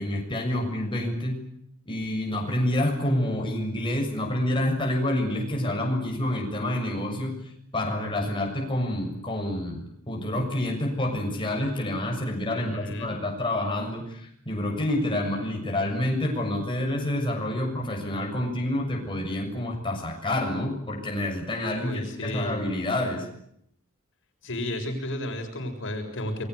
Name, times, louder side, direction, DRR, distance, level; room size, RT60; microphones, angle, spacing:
voice 1, 0.0-1.4 1.9-7.3 7.7-23.3, left 1 dB, 25° left, 0 dB, 7.1 m, -28 dB
voice 2, 12.5-13.1 21.8-22.7 24.4-26.5, left 1 dB, 60° left, 4 dB, 7.1 m, -32 dB
28.0 x 22.5 x 8.3 m, 0.72 s
head